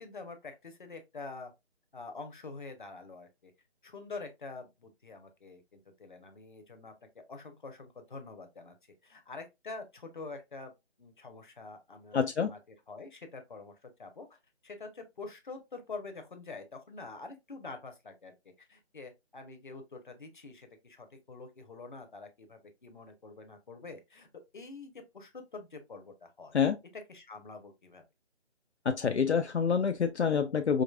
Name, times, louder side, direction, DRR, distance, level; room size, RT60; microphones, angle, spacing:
voice 1, 0.0-1.5 1.9-3.5 3.8-8.7 9.0-10.7 11.0-12.2 12.5-12.6 12.9-14.4 14.6-24.3 24.5-26.6 26.9-28.0, left 3 dB, 45° left, 0.8 m, -46 dB
voice 2, 12.1-12.5 26.5-26.8 28.9-30.8, left 6 dB, 75° left, 0.5 m, -27 dB
5.0 x 2.5 x 2.3 m
figure-of-eight pair, 155°, 34 cm